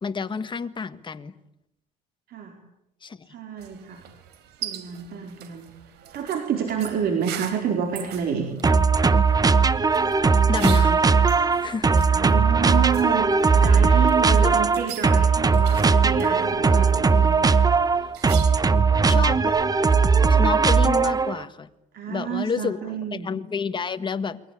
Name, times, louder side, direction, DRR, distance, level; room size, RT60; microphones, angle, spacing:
voice 1, 0.0-1.4 3.0-3.3 10.5-11.2 11.6-11.9 13.7-14.5 19.0-19.5 20.3-21.7 22.1-22.8 23.2-24.4, left 5 dB, 30° left, 9 dB, 1.7 m, -29 dB
voice 2, 3.3-4.0 4.6-5.8 6.1-8.5 12.0-17.4 18.7-19.1 21.9-23.3, right 7 dB, 65° right, 3 dB, 4.6 m, -29 dB
sound 1, 3.6-18.8, right 11 dB, 90° right, 4.1 m, -42 dB
sound 2, 8.6-21.4, right 5 dB, 20° right, 1.1 m, -19 dB
29.5 x 23.5 x 8.6 m, 0.87 s
cardioid pair, 110°, 17 cm